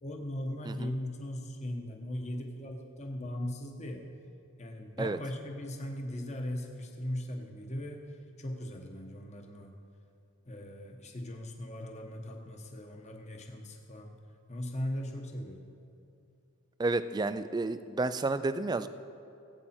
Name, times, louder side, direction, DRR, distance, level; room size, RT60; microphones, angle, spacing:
voice 1, 0.0-4.0 4.6-8.0 8.4-9.8 10.4-14.2 14.5-15.7, left 1 dB, 30° left, 3 dB, 1.2 m, -39 dB
voice 2, 16.8-18.9, right 3 dB, 20° right, 12 dB, 0.3 m, -31 dB
19.0 x 8.6 x 4.3 m, 2.7 s
head